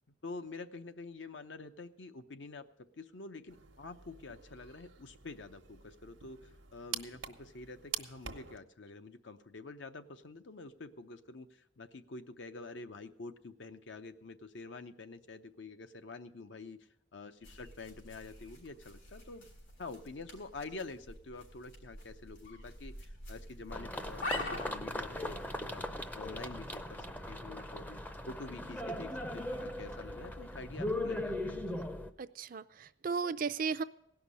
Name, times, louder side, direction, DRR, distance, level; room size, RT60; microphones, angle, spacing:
voice 1, 0.2-19.5 19.8-25.4 25.7-25.8 26.1-31.8, left 3 dB, 70° left, 9 dB, 0.7 m, -47 dB
sound 1, 3.5-8.6, right 9 dB, 85° right, 1.0 m, -46 dB
sound 2, 17.4-27.3, left 1 dB, 90° left, 3.9 m, -46 dB
sound 3, 23.7-32.1, left 1 dB, 10° left, 0.5 m, -39 dB
voice 2, 32.2-33.8, right 5 dB, 45° right, 14 dB, 0.4 m, -35 dB
17.0 x 5.9 x 8.3 m, 0.78 s
head